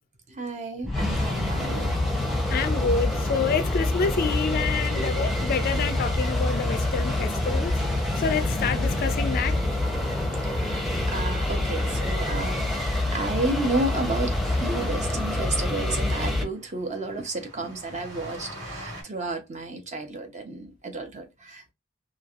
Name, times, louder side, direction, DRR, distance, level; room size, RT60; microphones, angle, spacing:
voice 1, 0.3-1.9 2.7-2.8 5.0-5.1 10.4-12.6 13.1-21.7, right 2 dB, 35° right, 0.6 m, -32 dB
sound 1, 0.8-16.4, left 1 dB, ahead, 0.7 m, -26 dB
voice 2, 2.5-7.7 8.2-9.6, left 5 dB, 45° left, 0.3 m, -28 dB
Train, 14.9-15.0 15.2-15.3 15.7-19.0, equal, 65° right, 1.7 m, -43 dB
3.2 x 2.3 x 2.4 m
head